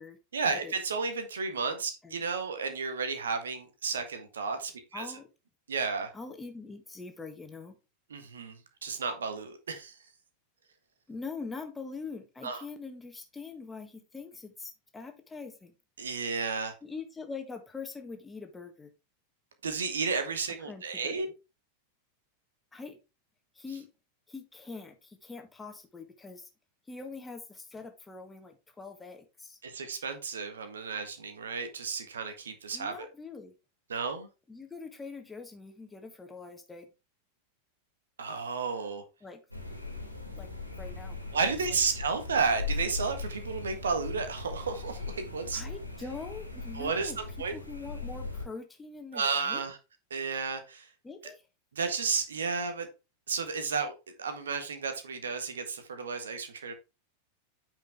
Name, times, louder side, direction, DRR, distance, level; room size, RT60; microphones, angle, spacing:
voice 1, 0.3-5.1 5.7-6.1 8.1-10.0 12.4-12.6 16.0-16.7 19.6-21.3 29.6-33.1 33.9-34.3 38.2-39.0 41.3-45.6 46.7-47.1 47.4-47.6 49.1-49.8 50.1-50.9 51.7-52.9 53.3-53.9 54.2-56.7, right 5 dB, 65° right, 7 dB, 1.5 m, -32 dB
voice 2, 4.9-5.3 6.1-7.8 11.1-15.7 16.8-18.9 20.6-21.2 22.7-23.0 23.5-23.9 24.3-26.5 26.9-29.6 32.7-33.5 34.5-36.9 39.2-39.4 40.4-40.5 40.8-41.2 41.7-41.8 45.5-47.2 47.5-49.6 51.0-51.4, left 4 dB, 10° left, 5 dB, 1.6 m, -43 dB
sound 1, 39.5-48.5, left 3 dB, 90° left, 2.3 m, -39 dB
9.1 x 5.3 x 3.5 m, 0.28 s
figure-of-eight pair, 90°, 0 cm